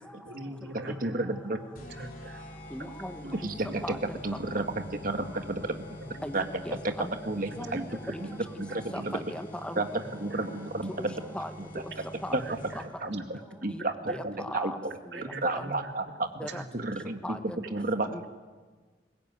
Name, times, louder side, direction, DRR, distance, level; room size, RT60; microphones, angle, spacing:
voice 1, 0.2-1.4 1.9-2.4 3.2-3.8 4.1-4.2 4.6-4.8 6.0-6.8 7.7-8.2 8.7-9.1 10.0-10.4 12.3-12.8 13.2-13.3 14.1-14.2 15.1-15.9 16.5-17.0 18.1-18.2, right 2 dB, 90° right, 4 dB, 2.6 m, -43 dB
voice 2, 1.0-1.6 3.4-3.8 4.2-5.9 6.3-6.5 6.8-7.9 8.2-9.1 9.8-9.9 10.2-11.1 12.3-12.4 13.0-15.0 15.4-16.3 16.7-17.4 17.7-18.3, right 2 dB, 50° right, 6 dB, 1.7 m, -32 dB
sound 1, 1.7-13.1, equal, 55° left, 4.0 m, -46 dB
voice 3, 2.7-3.2 3.8-4.0 6.2-7.1 7.6-8.2 8.9-9.8 11.0-11.1 11.3-11.5 11.8-11.9 12.2-12.4 13.7-13.8 14.1-14.8 15.1-15.2 15.5-15.6 16.4-16.6 17.2-17.6 18.1-18.2, equal, 5° left, 8 dB, 1.0 m, -38 dB
22.0 x 20.5 x 9.5 m, 1.4 s
head